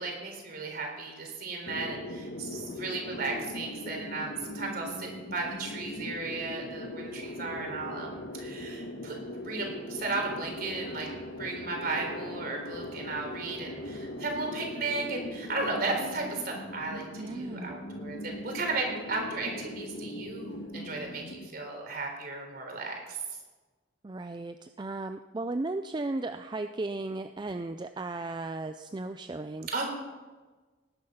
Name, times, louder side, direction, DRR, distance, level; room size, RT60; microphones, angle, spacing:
voice 1, 0.0-11.1 11.4-23.2 29.7-29.8, right 3 dB, 55° right, 2 dB, 4.0 m, -35 dB
sound 1, 1.7-21.5, left 1 dB, 65° left, 1.5 m, -40 dB
voice 2, 17.2-17.8 24.0-29.7, right 2 dB, 25° right, 9 dB, 0.4 m, -35 dB
19.0 x 10.5 x 5.6 m, 1.3 s
head